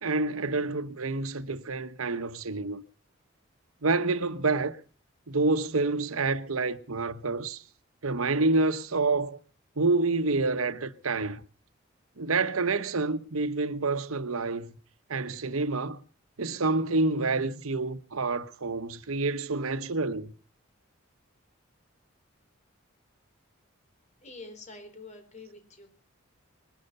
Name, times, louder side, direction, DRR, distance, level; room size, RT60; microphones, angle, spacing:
voice 1, 0.0-2.8 3.8-4.8 5.3-7.6 8.0-9.4 9.8-11.4 12.2-14.8 15.1-16.0 16.4-20.3, right 3 dB, 85° right, 1.1 m, -28 dB
voice 2, 24.2-25.9, left 3 dB, 35° left, 4.2 m, -46 dB
21.0 x 12.0 x 5.5 m
head